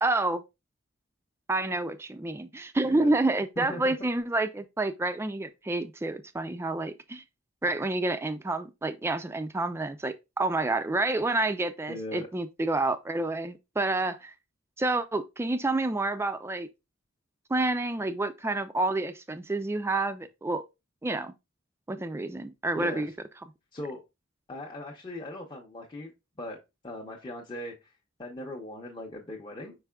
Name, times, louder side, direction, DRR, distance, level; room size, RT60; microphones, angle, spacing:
voice 1, 0.0-0.4 1.5-7.2 7.6-14.3 14.8-16.7 17.5-20.6 21.0-21.3 21.9-23.1, right 2 dB, 15° right, 0.3 m, -29 dB
voice 2, 3.6-3.9 11.9-12.3 22.7-23.1 23.7-24.0 24.5-26.1 26.4-26.6 26.8-27.9 28.2-29.7, left 1 dB, 25° left, 0.7 m, -39 dB
5.1 x 4.7 x 2.2 m
head